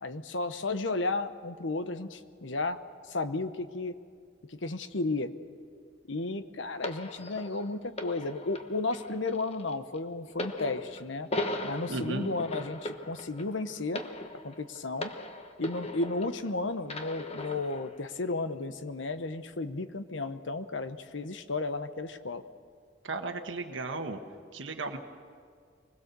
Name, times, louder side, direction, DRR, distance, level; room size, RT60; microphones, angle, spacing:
voice 1, 0.0-2.8 3.1-3.9 4.6-5.3 6.1-11.3 11.6-14.0 14.4-15.1 15.6-22.4, left 3 dB, 75° left, 10 dB, 1.1 m, -33 dB
sound 1, 6.8-16.5 16.9-17.9 18.7-18.8, left 1 dB, 35° left, 1.2 m, -38 dB
voice 2, 11.9-12.3 23.0-24.2 24.5-25.0, right 3 dB, 80° right, 5 dB, 1.3 m, -35 dB
24.5 x 20.5 x 6.9 m, 2.2 s
head